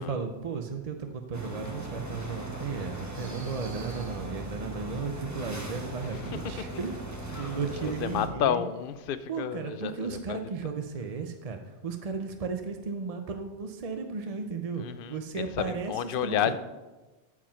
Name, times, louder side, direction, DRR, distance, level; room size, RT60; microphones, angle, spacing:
voice 1, 0.0-7.0 7.3-8.6 9.3-14.8 15.1-15.9 16.2-16.5, right 5 dB, 40° right, 0.6 m, -35 dB
sound 1, 1.3-8.3, right 1 dB, 15° right, 1.2 m, -39 dB
voice 2, 6.0-6.7 7.3-10.7 14.8-16.5, left 9 dB, 60° left, 0.7 m, -32 dB
14.5 x 4.9 x 5.6 m
omnidirectional pair, 1.1 m